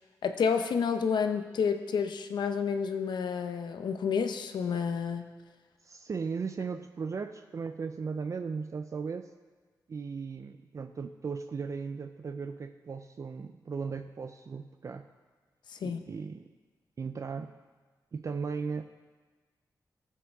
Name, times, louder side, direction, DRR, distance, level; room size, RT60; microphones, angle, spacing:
voice 1, 0.2-5.2 15.7-16.0, left 6 dB, 85° left, 7 dB, 0.7 m, -30 dB
voice 2, 5.8-9.3 9.9-15.1 15.8-16.5 17.0-17.5 18.1-19.0, right 5 dB, 45° right, 8 dB, 0.4 m, -37 dB
14.5 x 7.3 x 3.5 m, 1.4 s
wide cardioid pair, 95°, 7 cm